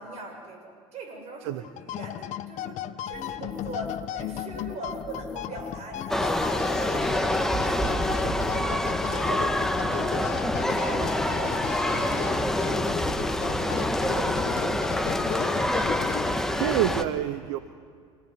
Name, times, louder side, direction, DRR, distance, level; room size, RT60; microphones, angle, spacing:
voice 1, 0.0-2.8 3.1-12.7 13.3-16.2, right 2 dB, 45° right, 4 dB, 7.8 m, -41 dB
sound 1, 1.6-16.6, left 11 dB, 50° left, 1.2 m, -35 dB
sound 2, 3.1-8.6, left 5 dB, 25° left, 1.2 m, -41 dB
sound 3, 6.1-17.0, left 1 dB, 5° left, 1.8 m, -26 dB
voice 2, 16.6-17.6, right 12 dB, 70° right, 11 dB, 1.1 m, -27 dB
27.5 x 18.0 x 9.7 m, 2.1 s
hypercardioid pair, 80°, 15 cm